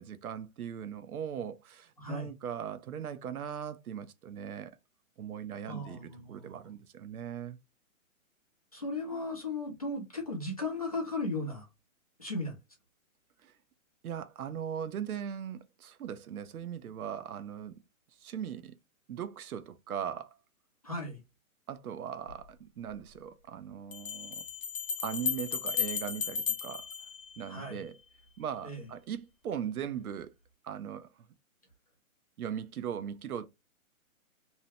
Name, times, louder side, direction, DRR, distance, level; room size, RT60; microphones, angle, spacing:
voice 1, 0.0-4.8 5.2-7.6 13.4-13.5 14.0-17.8 18.2-18.8 19.1-20.4 21.7-24.4 25.0-26.9 27.4-27.9 28.4-30.3 30.6-31.1 32.4-33.5, right 8 dB, 90° right, 0.6 m, -39 dB
voice 2, 2.0-2.3 5.7-6.6 8.7-11.7 12.2-12.6 20.8-21.2 27.5-27.8 28.6-28.8, left 2 dB, 25° left, 0.6 m, -36 dB
Bell, 22.3-22.4 23.9-27.8, left 7 dB, 70° left, 0.8 m, -35 dB
2.8 x 2.0 x 2.7 m
hypercardioid pair, 180°, 42 cm